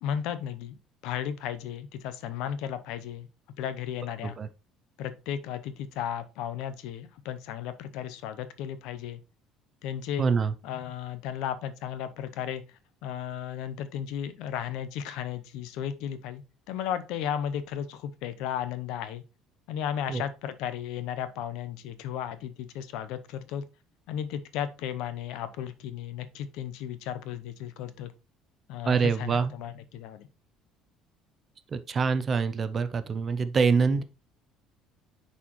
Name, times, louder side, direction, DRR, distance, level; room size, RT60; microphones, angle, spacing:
voice 1, 0.0-0.8 1.0-3.3 3.6-4.4 5.0-9.2 9.8-10.3 10.6-12.6 13.0-19.2 19.7-23.7 24.1-28.1 28.7-30.3, left 9 dB, 65° left, 0.7 m, -34 dB
voice 2, 10.2-10.5 20.1-20.2 28.9-29.5 31.7-34.0, right 5 dB, 25° right, 0.4 m, -25 dB
9.4 x 4.2 x 3.0 m
cardioid pair, 175°, 0 cm